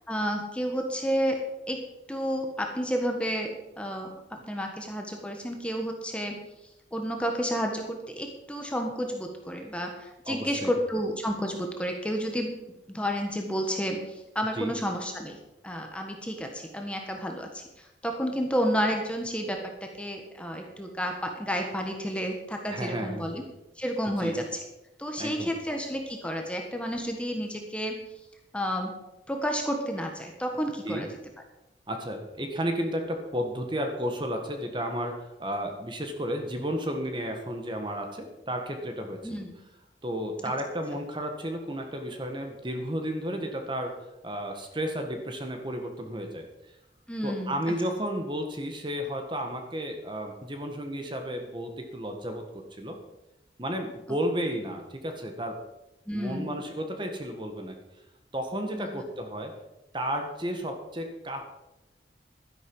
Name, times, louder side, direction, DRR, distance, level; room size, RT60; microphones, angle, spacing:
voice 1, 0.1-1.4 1.7-1.8 2.1-6.4 6.9-12.5 12.9-15.4 15.6-19.6 20.0-23.4 23.8-24.4 25.0-28.0 28.5-28.9 29.3-31.1 39.2-39.5 47.1-47.5 56.1-56.6 58.8-58.9, equal, 5° left, 3 dB, 1.4 m, -31 dB
voice 2, 10.3-10.7 14.5-14.7 22.7-23.3 24.2-24.4 25.2-25.5 30.8-31.1 31.9-39.2 40.0-43.9 44.2-46.5 47.2-52.4 52.8-53.0 53.6-55.6 56.1-57.8 58.3-59.5 59.9-61.4, equal, 25° right, 4 dB, 1.5 m, -32 dB
12.0 x 11.0 x 5.5 m, 0.94 s
head